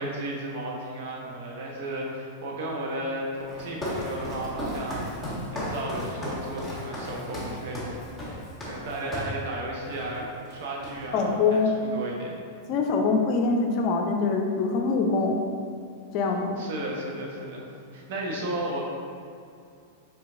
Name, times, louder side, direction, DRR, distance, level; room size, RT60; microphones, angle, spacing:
voice 1, 0.0-8.0 8.6-12.4 16.6-18.8, right 1 dB, 60° right, -2 dB, 0.9 m, -34 dB
Walk footsteps, 3.5-9.4 9.9-10.2 10.5-11.3, left 1 dB, 5° left, 1.5 m, -35 dB
voice 2, 11.1-11.7 12.7-15.4 16.1-16.6, left 4 dB, 45° left, 3 dB, 0.5 m, -24 dB
4.5 x 3.9 x 2.5 m, 2.4 s
hypercardioid pair, 100°, 0 cm